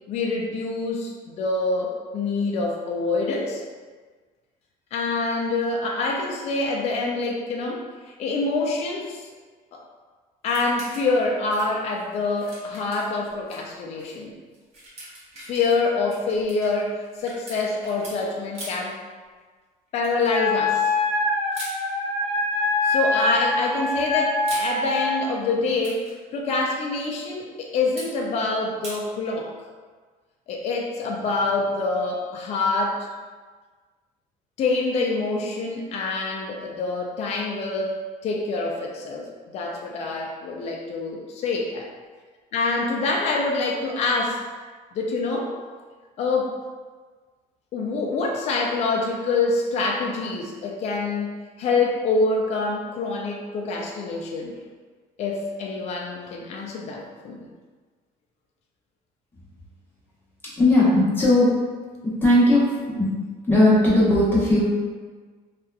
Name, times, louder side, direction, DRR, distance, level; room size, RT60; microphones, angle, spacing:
voice 1, 0.1-3.6 4.9-7.8 8.2-9.3 9.7-9.8 10.4-14.3 15.5-19.0 19.9-20.9 22.8-26.0 26.3-29.5 30.5-33.1 34.6-39.2 39.5-41.9 42.5-44.4 44.9-45.6 46.2-46.5 47.7-54.6 55.2-57.5, left 3 dB, 45° left, 0 dB, 0.4 m, -26 dB
sound 1, 10.4-11.2 11.5-13.6 14.0-14.1 14.5-18.2 18.5-18.9 20.0-20.4 21.5-21.8 22.9-23.4 24.2-24.7 25.6-26.1 28.0-28.1 28.8-29.0, right 1 dB, 40° right, 1.0 m, -41 dB
Wind instrument woodwind instrument, 20.3-25.2, left 2 dB, 65° left, 1.0 m, -24 dB
voice 2, 60.6-61.5 62.2-63.1 63.5-64.6, left 1 dB, 15° left, -8 dB, 0.9 m, -17 dB
2.8 x 2.4 x 2.2 m, 1.5 s
cardioid pair, 130°, 16 cm